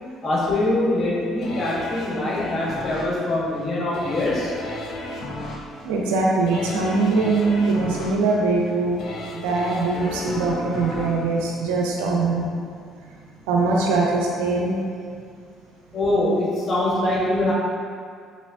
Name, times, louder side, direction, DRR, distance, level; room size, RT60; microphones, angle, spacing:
voice 1, 0.2-4.5 15.9-17.5, left 1 dB, 45° left, -5 dB, 1.1 m, -23 dB
sound 1, 1.4-12.4 12.8-12.9, left 1 dB, 65° left, 0.5 m, -35 dB
voice 2, 5.8-9.0 9.3-12.5 13.5-14.8, right 3 dB, 85° right, -2 dB, 0.5 m, -22 dB
3.7 x 3.1 x 2.6 m, 2.2 s
hypercardioid pair, 60°, 0 cm